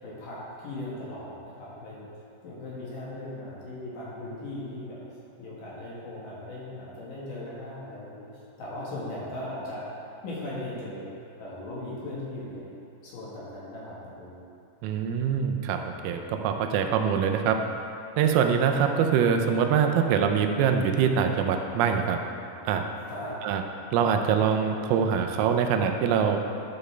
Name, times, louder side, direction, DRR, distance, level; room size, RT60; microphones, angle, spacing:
voice 1, 0.0-2.1 2.4-5.0 5.4-8.3 8.6-9.9 10.2-11.1 11.4-12.7 13.0-14.3 23.1-23.4, left 1 dB, 65° left, -7 dB, 2.2 m, -38 dB
voice 2, 14.8-17.6 18.2-22.2 22.7-22.8 23.4-23.6 23.9-26.4, right 7 dB, 90° right, 5 dB, 3.4 m, -24 dB
13.0 x 6.6 x 3.3 m, 2.8 s
omnidirectional pair, 5.9 m